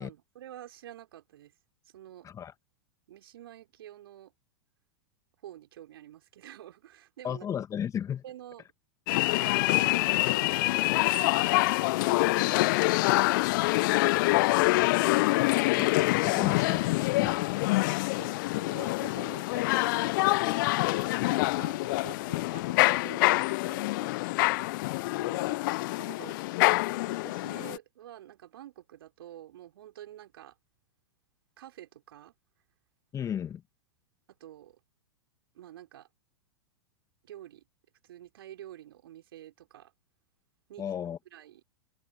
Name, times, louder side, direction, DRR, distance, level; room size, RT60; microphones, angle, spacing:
voice 1, 0.0-1.5 1.9-2.3 3.1-4.3 5.4-7.5 8.2-8.6 9.1-11.5 12.0-14.7 15.4-15.9 18.1-24.5 25.1-25.6 25.9-30.6 31.6-32.3 34.3-34.8 35.5-36.1 37.2-37.6 38.0-39.9 40.7-40.8 41.3-41.6, right 12 dB, 60° right, 5.2 m, -49 dB
voice 2, 7.2-8.2 15.8-17.7 33.1-33.6 40.8-41.2, left 9 dB, 20° left, 1.9 m, -35 dB
sound 1, 9.1-27.8, left 22 dB, 45° left, 1.0 m, -26 dB
figure-of-eight pair, 95°, 14 cm